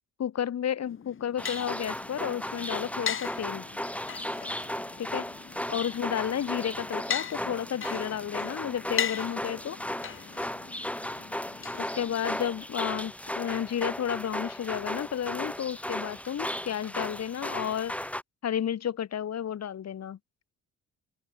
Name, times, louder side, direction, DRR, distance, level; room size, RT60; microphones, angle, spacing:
voice 1, 0.2-3.6 5.0-5.2 5.7-9.8 11.8-18.0 18.4-20.2, left 9 dB, 60° left, 3.0 m, -32 dB
sound 1, 0.9-12.5, left 7 dB, 45° left, 2.1 m, -39 dB
sound 2, 1.4-18.2, left 1 dB, 5° left, 3.4 m, -36 dB
open air
cardioid pair, 90°, 30 cm